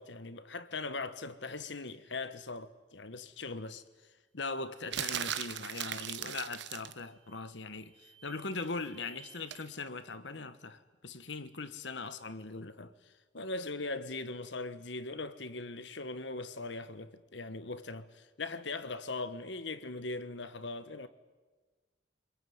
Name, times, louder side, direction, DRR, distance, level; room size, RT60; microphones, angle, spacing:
voice 1, 0.0-3.8 4.3-21.1, left 3 dB, 70° left, 1.4 m, -40 dB
sound 1, 4.9-7.0 9.5-9.7, right 10 dB, 65° right, 1.0 m, -37 dB
sound 2, 7.0-9.6, right 6 dB, 25° right, 7.0 m, -61 dB
27.0 x 21.5 x 9.5 m
head